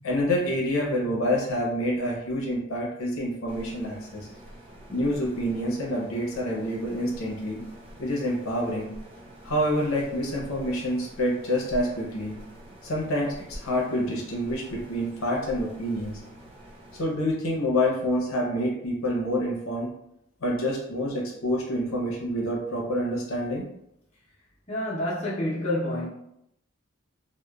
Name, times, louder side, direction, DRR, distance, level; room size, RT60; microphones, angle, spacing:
voice 1, 0.0-4.3 4.9-7.6 8.0-8.9 9.4-12.3 12.8-16.2 16.9-19.9 20.4-23.7, equal, 75° left, 0.7 m, -27 dB
sound 1, 3.5-17.0, right 1 dB, 25° right, 0.5 m, -46 dB
voice 2, 24.7-26.1, left 1 dB, 30° left, 0.7 m, -28 dB
2.9 x 2.1 x 2.3 m
head